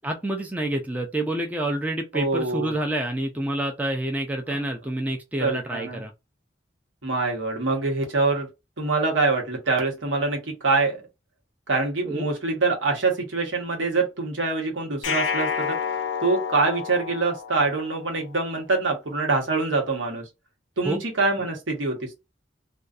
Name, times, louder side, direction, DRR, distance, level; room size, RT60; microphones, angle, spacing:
voice 1, 0.0-6.1 12.0-12.3 20.8-21.0, right 1 dB, 10° right, 0.4 m, -28 dB
voice 2, 2.1-2.7 4.5-4.6 5.4-6.0 7.0-8.5 8.8-11.0 11.7-15.8 16.2-20.3 20.8-22.2, right 3 dB, 90° right, 1.0 m, -25 dB
sound 1, 15.0-18.1, left 6 dB, 85° left, 0.4 m, -29 dB
2.5 x 2.3 x 2.4 m
head